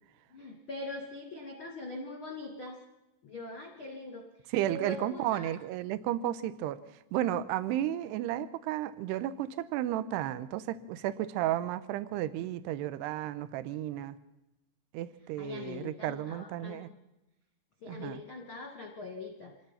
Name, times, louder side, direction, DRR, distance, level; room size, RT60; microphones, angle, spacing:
voice 1, 0.3-2.8 3.2-4.3 4.6-5.5 15.4-17.0 17.8-19.5, left 2 dB, 50° left, 1 dB, 1.6 m, -42 dB
voice 2, 4.5-6.8 7.1-14.2 14.9-16.9 17.9-18.2, right 12 dB, 80° right, 15 dB, 2.5 m, -33 dB
26.0 x 18.5 x 5.7 m, 0.95 s
omnidirectional pair, 5.7 m